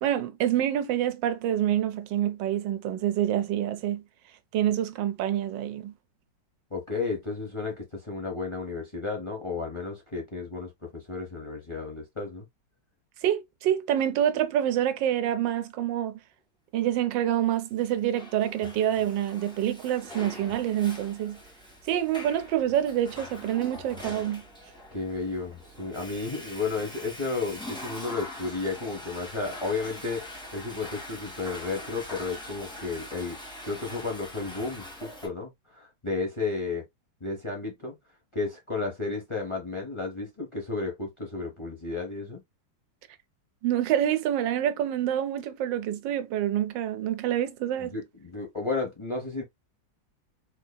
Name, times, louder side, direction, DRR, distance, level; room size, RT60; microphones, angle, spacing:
voice 1, 0.0-4.0 4.5-5.9 13.2-16.2 16.7-21.4 21.9-24.4 43.6-47.9, right 11 dB, 75° right, 1.3 m, -27 dB
voice 2, 6.7-12.5 24.9-33.4 33.6-36.8 37.2-38.0 38.3-42.4 47.8-49.4, left 3 dB, 25° left, 0.6 m, -33 dB
Water / Toilet flush, 17.8-35.3, left 1 dB, 5° left, 1.1 m, -43 dB
4.5 x 2.7 x 2.2 m
omnidirectional pair, 2.0 m